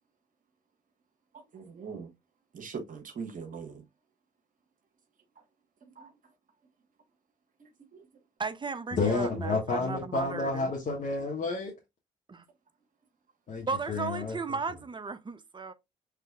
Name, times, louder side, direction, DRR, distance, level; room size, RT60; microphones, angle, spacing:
voice 1, 1.5-2.1 2.5-3.8 6.0-6.1 7.9-8.0, right 5 dB, 55° right, 1.3 m, -41 dB
voice 2, 8.4-10.7 12.3-12.4 13.7-15.7, right 4 dB, 30° right, 0.8 m, -35 dB
voice 3, 8.9-11.7 13.5-14.4, left 3 dB, 50° left, 1.4 m, -30 dB
5.9 x 3.3 x 2.3 m
hypercardioid pair, 50°, 17 cm